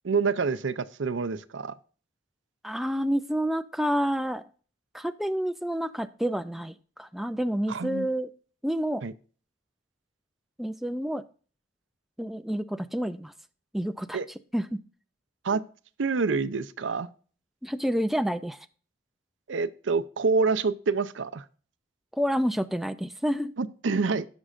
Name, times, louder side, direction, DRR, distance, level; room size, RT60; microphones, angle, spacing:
voice 1, 0.0-1.7 7.7-8.1 9.0-9.1 14.1-14.3 15.4-15.6 16.0-17.1 19.5-21.4 23.6-24.3, right 4 dB, 75° right, 14 dB, 0.6 m, -27 dB
voice 2, 2.6-4.4 4.9-8.3 8.6-9.0 10.6-11.2 12.2-13.3 13.7-14.8 17.6-18.7 22.1-23.5, equal, ahead, 10 dB, 0.3 m, -29 dB
16.5 x 6.2 x 2.5 m, 0.40 s
head